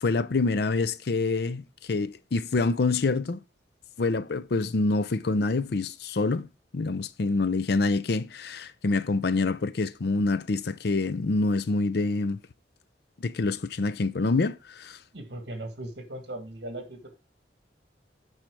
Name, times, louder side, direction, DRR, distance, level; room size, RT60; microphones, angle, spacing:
voice 1, 0.0-3.4 4.0-6.5 6.7-12.4 13.2-15.0, left 3 dB, 65° left, 0.6 m, -26 dB
voice 2, 15.1-17.2, right 1 dB, 65° right, 1.9 m, -38 dB
9.1 x 5.6 x 4.7 m
head